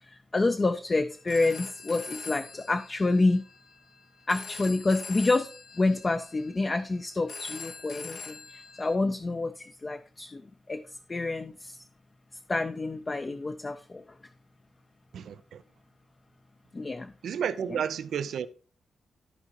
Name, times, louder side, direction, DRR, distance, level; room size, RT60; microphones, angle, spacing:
voice 1, 0.0-3.4 4.3-5.5 5.8-10.4 10.7-10.8 11.1-11.8 12.5-14.0 16.7-17.1, left 2 dB, 25° left, 0.5 m, -28 dB
Telephone, 1.1-8.9, left 4 dB, 85° left, 1.0 m, -44 dB
voice 2, 15.1-15.6 17.2-18.5, right 8 dB, 85° right, 0.5 m, -31 dB
13.5 x 4.8 x 2.9 m
wide cardioid pair, 125°, 0 cm